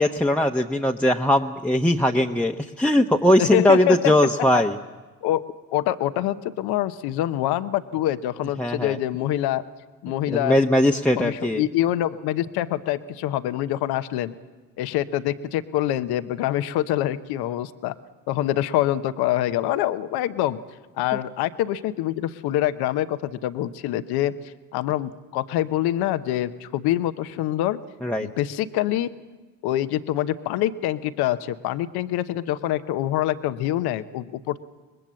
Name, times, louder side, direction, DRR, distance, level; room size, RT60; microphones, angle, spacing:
voice 1, 0.0-4.8 8.6-9.0 10.3-11.6 28.0-28.3, left 1 dB, 5° left, 3 dB, 1.0 m, -20 dB
voice 2, 3.4-4.1 4.5-4.6 5.2-5.4 5.7-9.6 10.0-10.6 11.1-14.3 14.8-17.9 18.3-20.6 21.0-24.3 24.7-27.8 28.2-29.1 29.6-34.6, left 13 dB, 75° left, 12 dB, 0.9 m, -25 dB
24.0 x 20.5 x 7.6 m, 1.2 s
hypercardioid pair, 55°, 38 cm